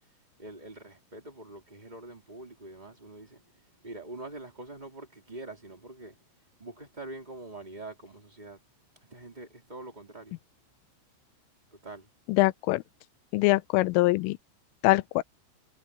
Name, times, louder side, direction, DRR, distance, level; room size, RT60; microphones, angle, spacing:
voice 1, 0.4-3.4 3.8-6.2 6.6-8.6 9.0-10.4 11.7-12.1, right 2 dB, 10° right, 2.9 m, -44 dB
voice 2, 12.3-12.8 13.3-14.4 14.8-15.2, left 20 dB, 85° left, 3.1 m, -23 dB
omnidirectional pair, 5.9 m